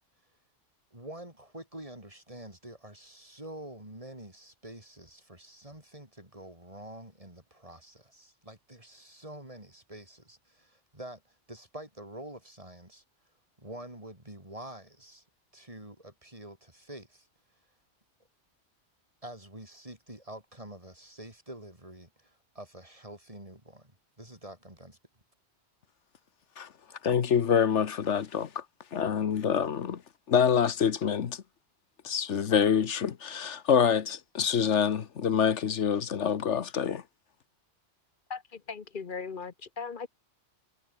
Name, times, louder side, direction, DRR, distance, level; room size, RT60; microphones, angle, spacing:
voice 1, 0.9-13.0 13.6-15.2 15.5-17.3 19.2-23.9 24.2-25.0, right 1 dB, 30° right, 5.9 m, -47 dB
voice 2, 27.0-28.6 28.9-30.0 30.3-31.4 32.0-37.0, left 7 dB, 80° left, 1.4 m, -26 dB
voice 3, 38.3-40.1, left 5 dB, 50° left, 1.1 m, -38 dB
omnidirectional pair, 1.2 m